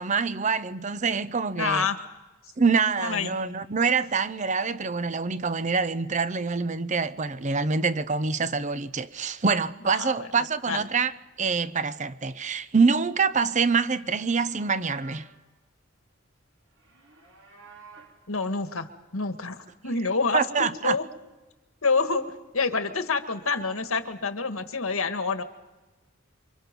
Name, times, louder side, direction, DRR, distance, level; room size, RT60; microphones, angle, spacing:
voice 1, 0.0-1.9 2.6-11.1 11.4-15.3 20.3-21.0, right 5 dB, 35° right, 0.7 m, -25 dB
voice 2, 1.6-2.0 3.0-3.3 9.9-10.3 10.7-10.8 18.3-18.9 19.1-21.0 21.8-25.4, left 4 dB, 85° left, 1.8 m, -27 dB
Livestock farm animals working animals, 14.3-15.4 16.7-18.2, right 4 dB, 70° right, 4.0 m, -51 dB
28.0 x 25.0 x 5.4 m
head